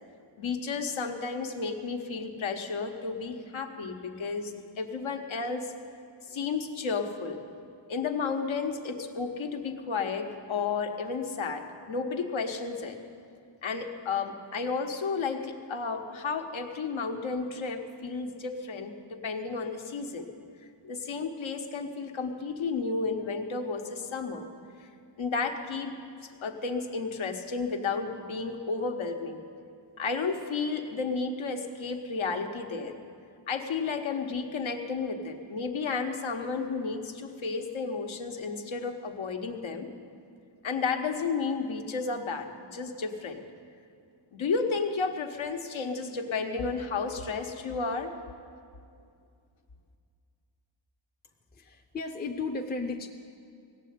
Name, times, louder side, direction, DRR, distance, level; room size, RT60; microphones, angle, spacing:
voice 1, 0.4-5.7 6.2-7.4 7.9-13.0 13.6-20.3 20.8-24.5 24.8-24.9 25.2-25.9 26.4-29.4 30.0-33.0 33.5-39.9 40.6-43.4 44.3-48.1, left 4 dB, 75° left, 4 dB, 1.2 m, -32 dB
voice 2, 51.5-53.1, left 3 dB, 20° left, 3 dB, 0.6 m, -34 dB
17.0 x 7.5 x 9.4 m, 2.4 s
wide cardioid pair, 130°, 47 cm